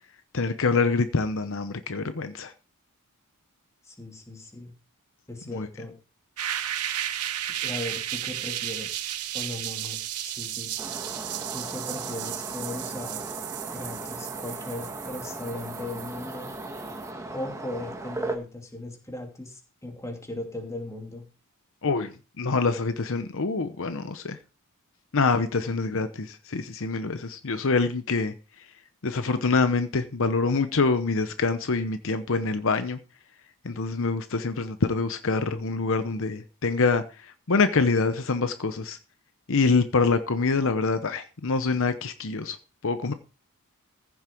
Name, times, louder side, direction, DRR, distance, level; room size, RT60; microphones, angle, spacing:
voice 1, 0.3-2.5 5.5-5.7 21.8-24.4 25.1-28.3 29.0-33.0 33.6-39.0 39.5-42.6 42.8-43.1, left 4 dB, 60° left, 0.8 m, -25 dB
voice 2, 3.8-4.7 5.3-5.9 7.6-9.0 9.3-10.7 11.5-13.2 13.7-16.5 17.3-21.2, left 2 dB, 15° left, 2.7 m, -37 dB
sound 1, 6.4-17.1, right 12 dB, 85° right, 0.9 m, -34 dB
sound 2, 10.8-18.4, right 2 dB, 15° right, 1.5 m, -37 dB
15.0 x 7.3 x 4.5 m
head